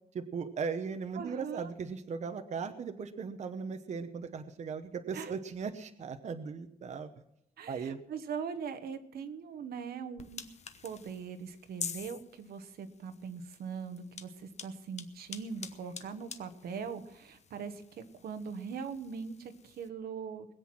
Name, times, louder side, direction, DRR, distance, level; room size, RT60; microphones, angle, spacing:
voice 1, 0.1-7.1 7.7-8.0, right 5 dB, 45° right, 8 dB, 0.9 m, -38 dB
voice 2, 1.1-1.7 5.1-5.3 7.6-10.5 10.8-20.5, right 6 dB, 80° right, 8 dB, 1.3 m, -41 dB
sound 1, 10.2-19.9, left 6 dB, 45° left, 1.1 m, -48 dB
21.0 x 8.1 x 6.1 m, 0.81 s
cardioid pair, 130°, 16 cm